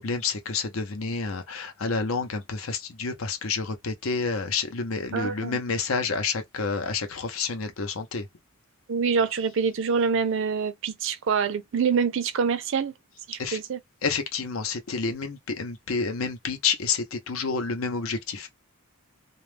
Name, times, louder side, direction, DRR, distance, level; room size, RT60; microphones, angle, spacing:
voice 1, 0.0-8.3 13.4-13.6 14.0-18.5, left 4 dB, 70° left, 0.6 m, -29 dB
voice 2, 5.1-5.6 8.9-12.9 13.3-13.8, right 5 dB, 60° right, 0.4 m, -25 dB
2.3 x 2.0 x 3.2 m
head